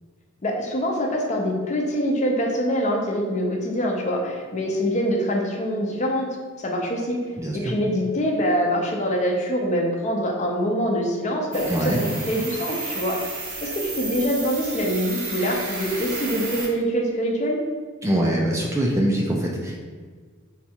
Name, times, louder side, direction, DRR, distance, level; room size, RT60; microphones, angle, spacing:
voice 1, 0.4-6.3 6.6-7.2 7.5-13.3 13.6-17.6, equal, 35° left, 0 dB, 0.6 m, -24 dB
voice 2, 7.4-7.7 11.7-12.1 18.0-19.8, right 1 dB, 15° right, -2 dB, 0.3 m, -23 dB
sound 1, 11.5-16.7, right 2 dB, 85° right, 0.8 m, -32 dB
4.0 x 2.3 x 4.3 m, 1.5 s
head